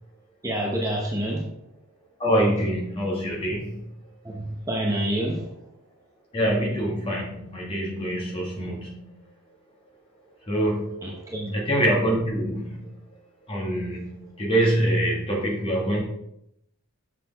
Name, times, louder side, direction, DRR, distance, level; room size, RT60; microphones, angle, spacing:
voice 1, 0.4-1.5 4.2-5.5 11.0-11.5, right 1 dB, 15° right, -2 dB, 0.8 m, -28 dB
voice 2, 2.2-3.8 6.3-9.1 10.5-11.1 11.5-12.9 13.5-16.0, right 1 dB, 25° left, -2 dB, 1.8 m, -25 dB
6.6 x 6.1 x 3.4 m, 0.78 s
head